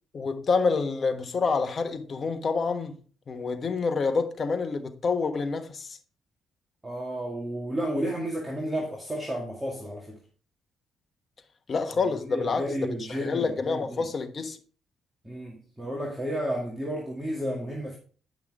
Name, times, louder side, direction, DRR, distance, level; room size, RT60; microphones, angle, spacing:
voice 1, 0.1-3.0 3.3-5.9 11.7-12.6 13.1-14.6, left 4 dB, 45° left, 1.2 m, -27 dB
voice 2, 6.8-10.2 12.2-14.0 15.2-18.0, equal, 15° right, 2.0 m, -32 dB
10.0 x 5.9 x 3.6 m
cardioid pair, 90°, 0 cm